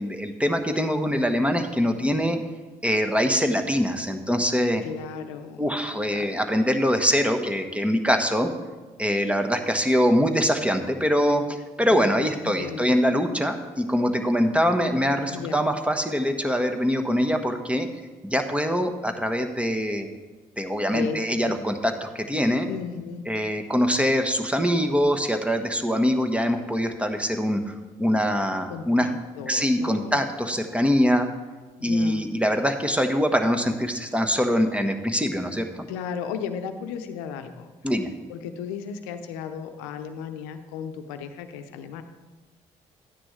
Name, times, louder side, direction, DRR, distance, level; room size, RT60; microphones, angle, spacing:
voice 1, 0.0-2.4 2.8-4.8 5.6-8.5 9.0-11.4 11.8-17.9 18.2-20.1 20.6-22.7 23.3-29.1 29.5-31.3 31.8-35.9 37.8-38.1, equal, 5° right, 5 dB, 1.3 m, -23 dB
voice 2, 4.8-5.7 6.1-6.3 11.9-13.0 15.3-15.6 20.9-21.2 21.4-21.6 22.7-23.3 28.7-30.2 31.8-32.2 35.9-37.7 38.3-42.0, left 7 dB, 85° left, 8 dB, 0.7 m, -35 dB
12.5 x 9.9 x 3.3 m, 1.3 s
hypercardioid pair, 45°, 17 cm